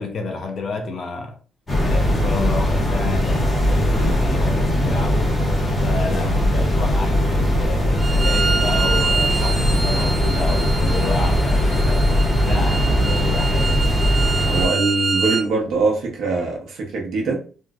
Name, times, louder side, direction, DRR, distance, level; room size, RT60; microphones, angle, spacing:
voice 1, 0.0-1.4 1.8-5.4 5.8-12.1 12.4-13.8, left 3 dB, 55° left, 0.7 m, -29 dB
sound 1, 1.7-14.7, equal, 20° left, 1.4 m, -19 dB
sound 2, 7.1-14.6, right 1 dB, 45° right, 1.0 m, -37 dB
Bowed string instrument, 8.0-15.4, right 4 dB, 20° right, 0.8 m, -26 dB
voice 2, 14.5-17.4, right 3 dB, 80° right, 1.0 m, -22 dB
3.1 x 2.4 x 2.4 m
cardioid pair, 105°, 0 cm